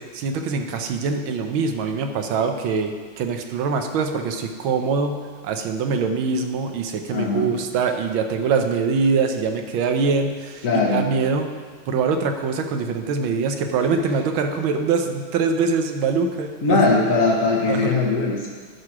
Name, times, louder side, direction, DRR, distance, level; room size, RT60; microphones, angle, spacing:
voice 1, 0.1-5.2 5.4-11.5 11.9-16.8 17.7-17.9, right 5 dB, 75° right, 6 dB, 1.5 m, -23 dB
voice 2, 7.1-7.6 10.6-11.2 16.6-18.5, left 3 dB, 50° left, -3 dB, 1.2 m, -20 dB
11.0 x 4.8 x 6.0 m, 1.5 s
omnidirectional pair, 2.3 m